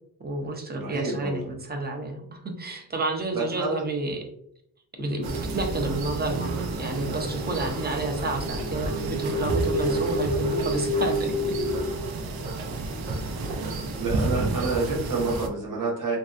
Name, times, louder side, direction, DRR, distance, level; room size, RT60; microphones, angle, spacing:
voice 1, 0.2-4.3 4.9-5.3 5.5-11.6, right 2 dB, 25° right, 3 dB, 0.6 m, -30 dB
voice 2, 0.7-1.5 3.3-3.8 14.0-16.2, right 3 dB, 60° right, -1 dB, 1.1 m, -28 dB
sound 1, 5.0-11.9, equal, 30° left, 0.4 m, -30 dB
sound 2, 5.2-15.5, right 2 dB, 80° right, 0.6 m, -31 dB
3.2 x 2.7 x 2.4 m, 0.72 s
wide cardioid pair, 115°, 37 cm